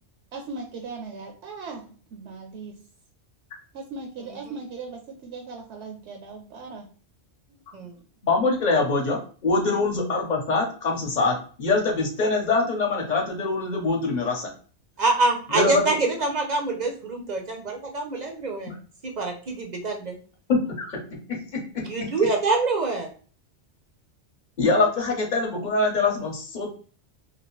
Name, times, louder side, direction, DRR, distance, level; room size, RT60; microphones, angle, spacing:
voice 1, 0.3-2.8 3.7-6.9 9.7-9.9, right 4 dB, 75° right, 3 dB, 0.9 m, -38 dB
voice 2, 8.2-14.5 15.5-15.9 18.7-18.8 20.5-21.0 21.3-22.1 24.6-26.7, left 3 dB, 45° left, 2 dB, 0.9 m, -24 dB
voice 3, 15.0-18.7 19.0-20.2 21.9-23.1, right 3 dB, 50° right, 3 dB, 0.6 m, -25 dB
2.9 x 2.8 x 3.0 m, 0.41 s
omnidirectional pair, 1.2 m